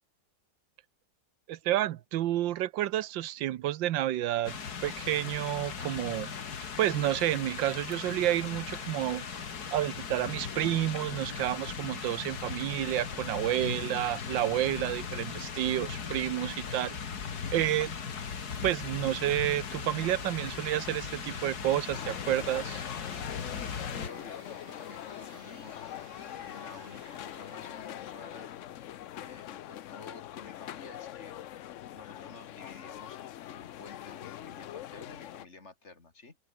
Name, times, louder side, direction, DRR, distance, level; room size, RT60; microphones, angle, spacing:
voice 1, 1.5-4.6 4.8-6.3 6.8-9.2 9.7-17.0 17.5-18.0 18.6-22.8, right 13 dB, 85° right, 1.5 m, -30 dB
sound 1, 4.5-24.1, left 6 dB, 55° left, 2.3 m, -38 dB
sound 2, 16.6-29.7, right 4 dB, 40° right, 2.7 m, -57 dB
sound 3, 21.9-35.5, left 12 dB, 75° left, 0.7 m, -43 dB
voice 2, 23.8-25.8 26.4-28.5 29.2-31.4 31.9-36.4, left 3 dB, 40° left, 2.8 m, -51 dB
open air
omnidirectional pair, 2.0 m